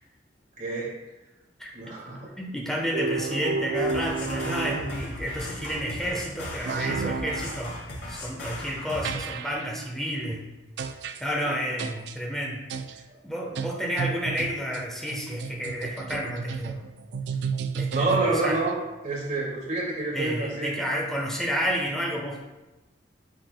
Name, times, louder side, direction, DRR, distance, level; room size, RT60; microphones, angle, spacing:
voice 1, 0.6-0.9 1.7-2.3 11.4-11.6 13.1-13.2 17.9-18.7 19.0-20.7, right 3 dB, 45° right, -5 dB, 2.3 m, -28 dB
voice 2, 2.4-7.7 8.1-10.5 11.2-12.7 13.2-16.8 17.7-18.6 20.1-22.4, equal, 5° left, -2 dB, 1.0 m, -30 dB
sound 1, 2.9-5.3 6.7-7.6 9.0-9.7 10.8-11.2 11.8-12.1 12.7-13.0 13.6-18.6, right 4 dB, 65° right, 0.4 m, -32 dB
sound 2, 3.7-9.1, left 1 dB, 90° left, 1.9 m, -37 dB
8.7 x 6.1 x 2.2 m, 1.1 s
head